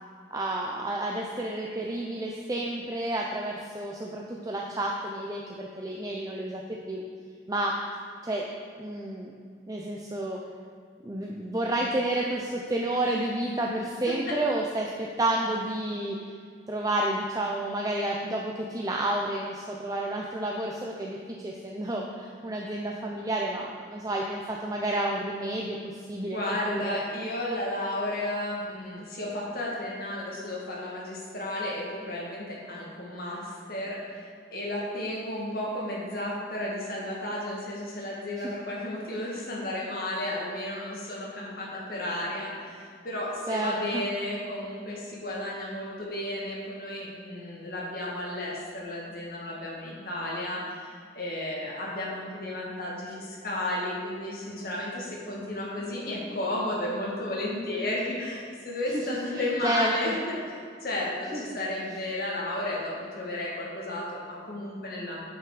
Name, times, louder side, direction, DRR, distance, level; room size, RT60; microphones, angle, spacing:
voice 1, 0.3-6.6 6.9-7.0 7.5-7.7 8.2-8.5 8.8-9.3 9.7-10.4 11.0-16.2 16.7-21.2 21.4-25.8 26.1-26.4 26.7-27.0 43.5-44.0 59.3-60.1 61.3-61.4, right 1 dB, 20° right, -1 dB, 0.5 m, -30 dB
voice 2, 14.1-14.4 26.3-60.3 60.8-65.2, left 1 dB, 50° left, -4 dB, 1.9 m, -33 dB
8.3 x 5.8 x 4.8 m, 2.1 s
head